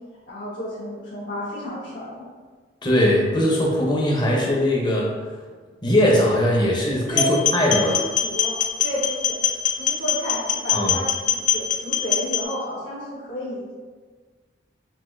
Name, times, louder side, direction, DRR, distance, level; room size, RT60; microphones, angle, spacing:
voice 1, 0.3-2.2 5.5-5.6 7.1-7.3 7.8-9.3 9.8-13.7, equal, 75° left, -9 dB, 1.3 m, -31 dB
voice 2, 2.8-5.1 5.8-7.9 10.7-10.9, left 1 dB, 25° left, -3 dB, 0.7 m, -20 dB
sound 1, 7.1-12.4, left 9 dB, 40° left, 0.3 m, -23 dB
5.8 x 2.6 x 2.6 m, 1.4 s
head